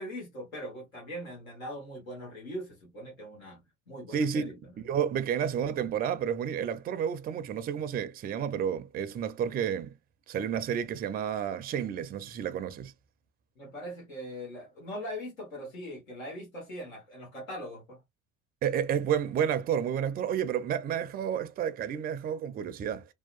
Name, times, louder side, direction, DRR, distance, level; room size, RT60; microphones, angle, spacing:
voice 1, 0.0-4.5 13.6-18.0, equal, 85° left, 1.3 m, -41 dB
voice 2, 4.1-9.9 10.3-12.9 18.6-23.0, right 8 dB, 25° right, 0.4 m, -31 dB
2.7 x 2.2 x 2.3 m
hypercardioid pair, 65°, 40 cm